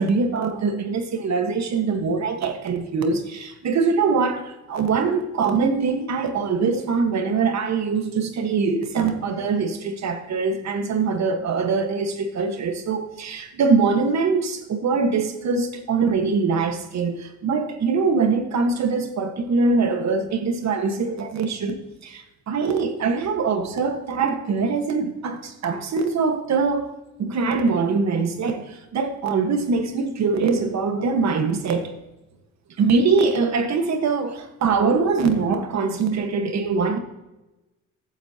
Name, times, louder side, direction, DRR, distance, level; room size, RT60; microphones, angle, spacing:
voice 1, 0.0-26.9 27.2-31.9 32.8-37.0, right 4 dB, 65° right, 1.5 m, -23 dB
14.5 x 8.7 x 2.9 m
cardioid pair, 90°, 30 cm